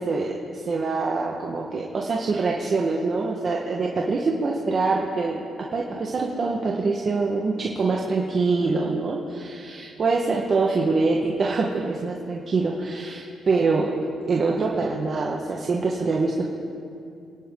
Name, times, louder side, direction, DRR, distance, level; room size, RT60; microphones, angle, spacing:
voice 1, 0.0-5.4 5.7-13.9 14.3-16.5, right 3 dB, 45° right, -2 dB, 1.6 m, -24 dB
27.0 x 11.0 x 4.0 m, 2.5 s
cardioid pair, 90°, 0 cm